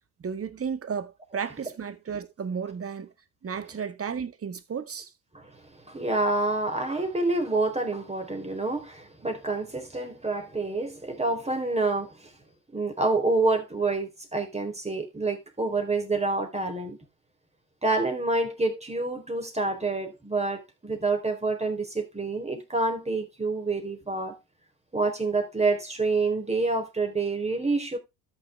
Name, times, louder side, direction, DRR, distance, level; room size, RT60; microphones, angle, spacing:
voice 1, 0.2-3.1 3.4-5.1, right 6 dB, 30° right, 1.8 m, -33 dB
voice 2, 5.3-12.3 12.7-17.0 17.8-24.4 24.9-28.0, right 3 dB, 15° right, 4.1 m, -27 dB
13.5 x 5.6 x 3.5 m
hypercardioid pair, 65°, 45 cm